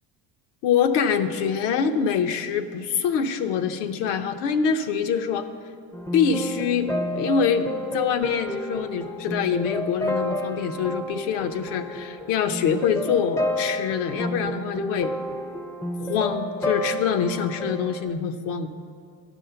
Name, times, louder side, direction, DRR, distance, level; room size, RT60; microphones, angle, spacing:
voice 1, 0.6-5.5 6.1-15.1 16.0-18.7, left 7 dB, 80° left, 9 dB, 0.8 m, -25 dB
sound 1, 5.9-18.1, equal, 10° left, 0.4 m, -30 dB
10.0 x 6.3 x 6.8 m, 2.4 s
cardioid pair, 135°, 41 cm